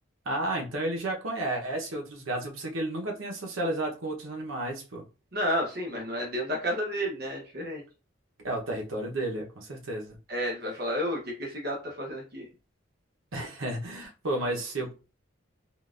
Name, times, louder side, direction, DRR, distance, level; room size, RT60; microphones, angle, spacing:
voice 1, 0.2-5.0 8.4-10.2 13.3-14.9, right 1 dB, 85° right, 0.8 m, -32 dB
voice 2, 5.3-7.8 10.3-12.5, equal, 50° right, 0.8 m, -31 dB
3.7 x 2.3 x 2.4 m
head